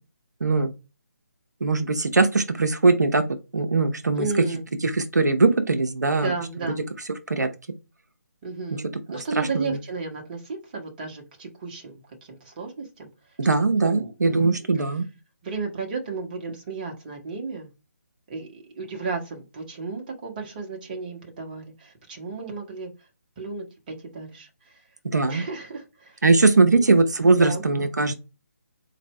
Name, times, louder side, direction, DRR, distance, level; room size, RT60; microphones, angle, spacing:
voice 1, 0.4-0.7 1.6-3.2 3.5-4.3 4.8-6.3 7.3-7.5 8.7-8.8 9.1-9.8 13.4-15.0 25.1-25.4 26.2-28.1, right 3 dB, 80° right, 7 dB, 0.6 m, -20 dB
voice 2, 4.2-4.6 6.2-6.8 8.4-13.1 13.8-14.9 15.4-17.7 18.3-22.9 23.4-24.8 25.3-26.2 26.7-26.9 27.3-27.6, right 4 dB, 30° right, 2 dB, 1.1 m, -34 dB
4.1 x 2.6 x 3.1 m, 0.29 s
figure-of-eight pair, 150°, 9 cm